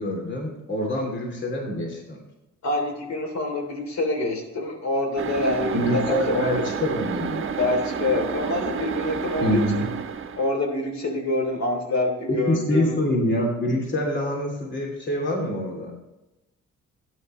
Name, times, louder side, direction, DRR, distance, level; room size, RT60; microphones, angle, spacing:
voice 1, 0.0-2.2 5.7-7.4 9.4-9.9 12.3-15.9, left 1 dB, 40° left, 0 dB, 3.0 m, -25 dB
voice 2, 2.6-6.5 7.6-9.9 10.3-13.0, left 2 dB, 65° left, 3 dB, 3.3 m, -26 dB
sound 1, 5.2-10.6, right 6 dB, 45° right, 1.1 m, -30 dB
12.5 x 10.0 x 3.2 m, 1.0 s
cardioid pair, 90°, 30 cm